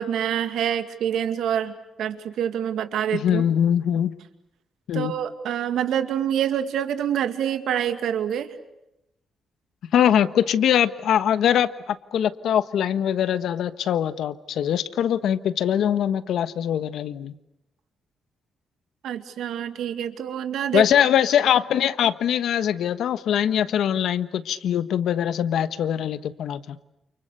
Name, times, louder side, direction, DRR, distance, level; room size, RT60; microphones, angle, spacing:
voice 1, 0.0-1.7 2.0-3.4 4.9-8.5 19.0-20.9, right 9 dB, 90° right, 9 dB, 2.3 m, -26 dB
voice 2, 3.1-4.2 4.9-5.1 9.9-17.3 20.7-26.8, left 9 dB, 80° left, 13 dB, 1.3 m, -22 dB
29.5 x 29.0 x 6.8 m, 0.85 s
cardioid pair, 145°, 0 cm